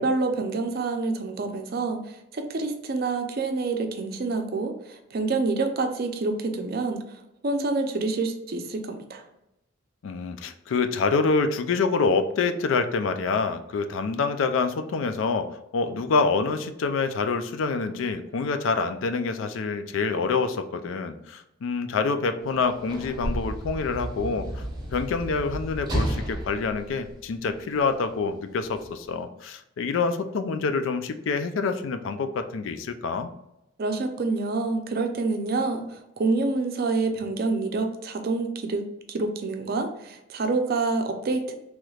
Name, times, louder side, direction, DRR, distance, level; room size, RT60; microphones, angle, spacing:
voice 1, 0.0-7.2 7.4-9.2 33.8-41.5, right 3 dB, 50° right, 5 dB, 0.5 m, -27 dB
voice 2, 10.0-15.5 15.7-24.6 24.9-33.3, left 4 dB, 80° left, 9 dB, 0.4 m, -26 dB
Sliding door / Slam, 22.4-27.8 28.7-28.9, right 1 dB, 25° right, 0.9 m, -32 dB
3.2 x 3.0 x 2.3 m, 0.87 s
head